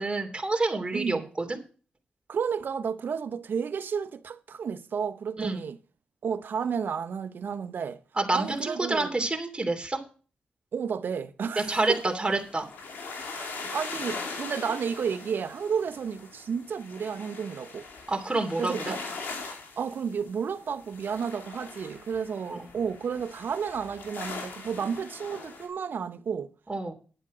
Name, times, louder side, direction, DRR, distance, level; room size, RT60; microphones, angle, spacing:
voice 1, 0.0-1.6 5.4-5.6 8.2-10.0 11.6-12.7 18.1-18.7 22.5-22.7 26.7-26.9, right 2 dB, 30° right, 2.9 m, -28 dB
voice 2, 2.3-5.8 6.2-8.0 8.3-9.1 10.7-12.0 13.3-17.9 18.6-19.0 19.8-26.5, right 6 dB, 75° right, 0.9 m, -32 dB
sound 1, 11.7-25.7, left 4 dB, 90° left, 2.7 m, -41 dB
10.5 x 8.7 x 5.0 m
cardioid pair, 50°, 3 cm